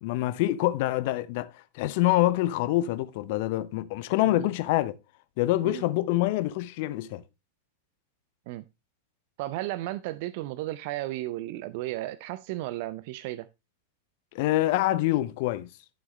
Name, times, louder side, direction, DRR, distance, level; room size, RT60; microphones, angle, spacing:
voice 1, 0.0-4.9 5.4-7.2 14.3-15.7, left 16 dB, 50° left, 0.7 m, -26 dB
voice 2, 9.4-13.5, right 16 dB, 50° right, 0.5 m, -34 dB
12.0 x 7.1 x 3.2 m
figure-of-eight pair, 95°, 0 cm